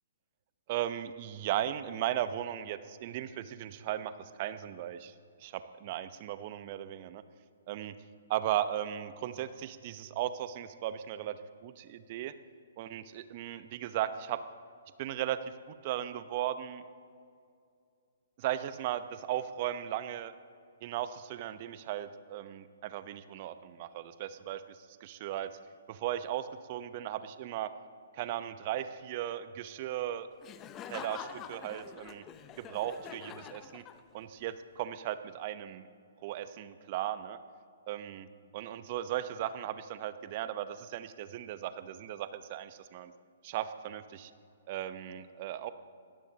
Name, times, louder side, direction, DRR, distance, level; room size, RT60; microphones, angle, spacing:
voice 1, 0.7-5.1 5.4-7.2 7.7-7.9 8.3-12.3 12.8-14.4 15.0-15.4 15.7-16.8 18.4-20.3 20.8-25.5 25.9-27.7 28.1-30.3 30.9-32.2 32.6-33.8 34.1-35.8 36.2-37.4 37.9-38.3 38.5-43.1 43.4-44.3 44.7-45.7, right 12 dB, 40° right, 12 dB, 0.9 m, -36 dB
Laughter, 30.4-34.4, left 8 dB, 25° left, 0.8 m, -46 dB
24.5 x 18.0 x 2.9 m, 2.4 s
figure-of-eight pair, 125°, 0 cm